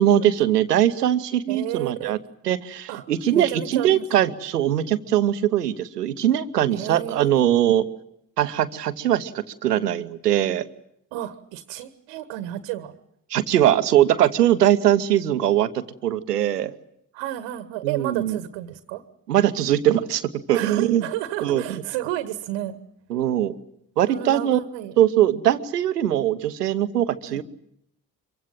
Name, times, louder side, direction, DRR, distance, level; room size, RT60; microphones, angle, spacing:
voice 1, 0.0-2.2 2.4-7.8 8.4-9.3 9.6-10.6 13.3-16.7 17.8-18.4 19.3-20.2 20.5-21.0 21.4-21.8 23.1-23.6 24.0-24.6 25.0-27.4, right 11 dB, 85° right, 13 dB, 0.9 m, -21 dB
voice 2, 1.5-2.2 2.9-3.0 3.3-4.0 6.7-7.5 11.1-12.9 17.1-19.0 20.5-22.8 24.1-24.9 27.2-27.4, right 13 dB, 65° right, 11 dB, 1.4 m, -31 dB
24.5 x 23.5 x 7.5 m, 0.75 s
figure-of-eight pair, 40°, 46 cm